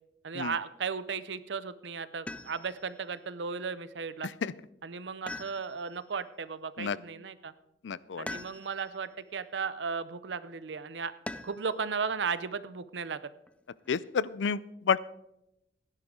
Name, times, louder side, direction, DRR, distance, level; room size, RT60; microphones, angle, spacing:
voice 1, 0.2-4.3 4.8-7.5 8.2-11.1 11.4-13.2, right 5 dB, 75° right, 15 dB, 0.7 m, -35 dB
sound 1, 2.3-2.9 5.3-6.1 8.3-9.0 11.3-11.8 13.5-14.1, left 2 dB, 5° left, 0.4 m, -42 dB
voice 2, 7.8-8.3 13.9-15.0, left 6 dB, 90° left, 20 dB, 0.4 m, -30 dB
16.5 x 10.5 x 3.8 m, 0.84 s
head